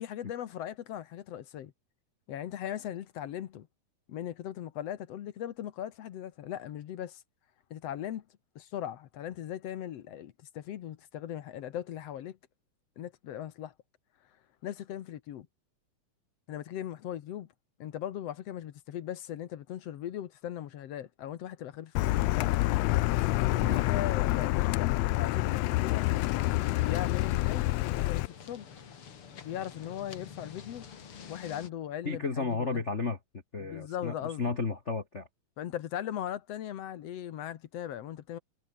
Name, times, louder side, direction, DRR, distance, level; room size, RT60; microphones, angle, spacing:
voice 1, 0.0-1.7 2.3-3.7 4.1-7.2 7.7-8.2 8.6-12.4 13.0-13.7 14.6-15.5 16.5-17.5 17.8-22.5 23.3-26.1 26.8-28.7 29.4-30.9 31.2-32.8 33.6-34.6 35.6-38.4, left 11 dB, 60° left, 1.9 m, -39 dB
Car, 22.0-28.3, left 18 dB, 80° left, 1.6 m, -27 dB
sound 1, 26.1-31.7, left 7 dB, 45° left, 2.9 m, -48 dB
voice 2, 32.0-33.2 33.5-35.3, left 4 dB, 30° left, 1.4 m, -33 dB
omnidirectional pair, 3.6 m